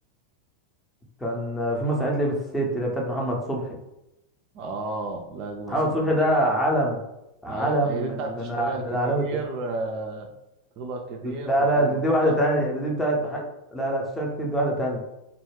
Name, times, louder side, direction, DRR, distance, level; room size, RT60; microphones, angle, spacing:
voice 1, 1.2-3.6 5.7-7.0 7.4-9.2 11.2-15.0, right 1 dB, 10° left, -1 dB, 0.6 m, -24 dB
voice 2, 4.5-6.2 7.5-10.3 10.8-12.4, right 3 dB, 40° right, 3 dB, 0.3 m, -33 dB
2.2 x 2.1 x 3.2 m, 0.90 s
figure-of-eight pair, 90°, 0 cm